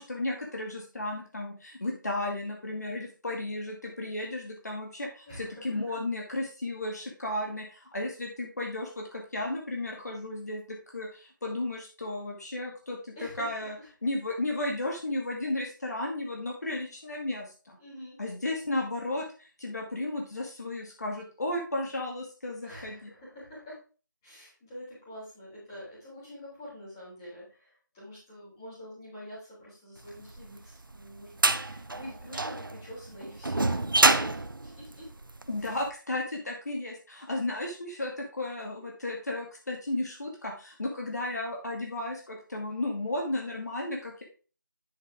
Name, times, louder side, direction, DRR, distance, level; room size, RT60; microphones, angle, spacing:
voice 1, 0.0-13.8 14.0-17.8 18.2-23.1 35.5-44.2, left 2 dB, 55° left, 0 dB, 2.1 m, -34 dB
voice 2, 5.3-5.7 13.1-13.5 13.8-13.9 17.8-18.2 22.6-23.8 24.2-35.1 35.6-35.7, equal, 10° left, -9 dB, 3.5 m, -46 dB
sound 1, 30.4-35.7, right 2 dB, 85° right, 0.8 m, -27 dB
9.9 x 5.6 x 3.6 m, 0.36 s
figure-of-eight pair, 175°, 11 cm